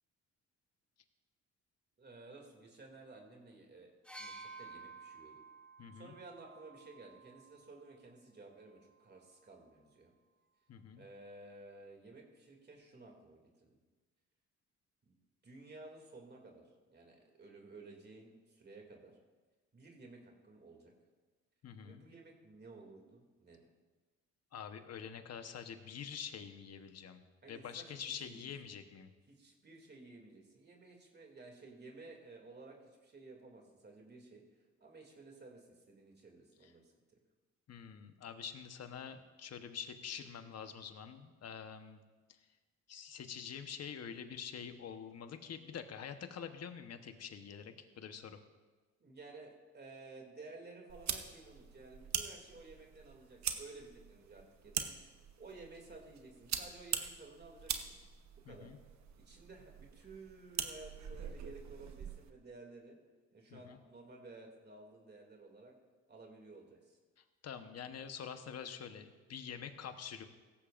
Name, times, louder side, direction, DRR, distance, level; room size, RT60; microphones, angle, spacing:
voice 1, 2.0-3.9 4.2-5.4 5.9-10.1 11.0-13.8 15.0-19.1 19.7-20.9 21.8-23.6 27.4-28.5 29.3-34.4 34.8-36.9 49.0-55.0 55.4-58.0 58.5-58.7 59.2-63.0 63.3-65.7 66.1-67.0, right 3 dB, 35° right, 1 dB, 2.6 m, -54 dB
sound 1, 4.0-7.9 8.9-9.0, right 3 dB, 5° left, 1.2 m, -53 dB
voice 2, 5.8-6.2 10.7-11.0 21.6-22.0 24.5-27.2 27.5-29.1 37.7-42.0 42.3-42.4 42.9-48.4 58.4-58.8 63.5-63.8 67.4-70.2, left 7 dB, 55° left, 8 dB, 1.1 m, -46 dB
sound 2, 50.9-62.3, right 8 dB, 65° right, 1.1 m, -43 dB
17.0 x 14.5 x 2.6 m, 1.3 s
cardioid pair, 90°, 30 cm